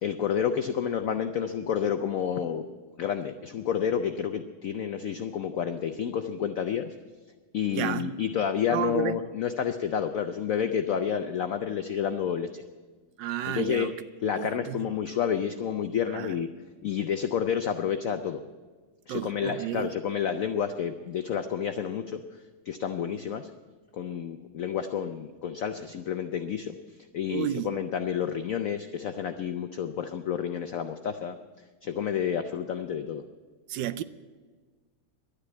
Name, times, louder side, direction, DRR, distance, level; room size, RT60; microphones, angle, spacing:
voice 1, 0.0-2.7 3.0-6.9 7.5-12.6 13.4-13.9 14.2-16.5 16.8-18.4 19.1-22.2 22.7-23.5 23.9-26.8 27.1-31.4 31.8-33.2, left 8 dB, 75° left, 0.7 m, -29 dB
voice 2, 7.7-8.1 8.7-9.2 13.2-13.9 14.4-14.8 16.1-16.3 19.1-19.9 27.3-27.7 33.7-34.0, right 12 dB, 75° right, 1.2 m, -32 dB
12.0 x 9.9 x 9.0 m
omnidirectional pair, 2.1 m